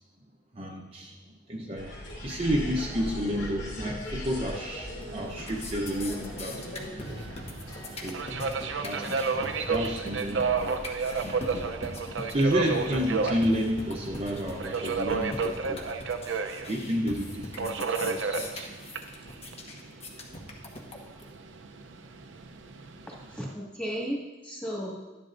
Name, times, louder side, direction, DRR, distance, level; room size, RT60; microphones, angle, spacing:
voice 1, 0.5-1.9 2.2-7.4 7.9-8.2 8.8-10.9 11.2-11.7 12.3-15.8 16.7-18.7, equal, 30° right, -1 dB, 0.8 m, -31 dB
sound 1, 1.8-15.5, equal, 70° left, 2.6 m, -42 dB
sound 2, 4.6-5.0 5.3-21.3, left 1 dB, 35° left, 1.2 m, -41 dB
Subway metro underground, 5.1-23.5, right 4 dB, 85° right, 0.7 m, -33 dB
voice 2, 23.1-25.0, equal, 5° left, -3 dB, 2.0 m, -35 dB
12.0 x 10.5 x 2.6 m, 1.2 s
head